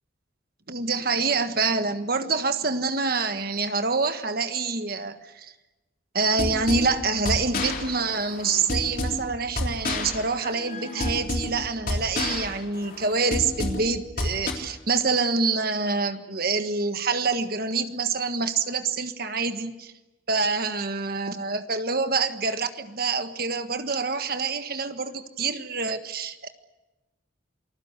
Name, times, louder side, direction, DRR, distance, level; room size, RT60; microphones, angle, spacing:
voice 1, 0.7-5.5 6.1-19.9 20.3-26.5, right 4 dB, 50° right, 9 dB, 1.5 m, -26 dB
sound 1, 6.2-14.5, left 1 dB, 45° left, 3.4 m, -30 dB
28.0 x 20.0 x 8.2 m, 1.1 s
head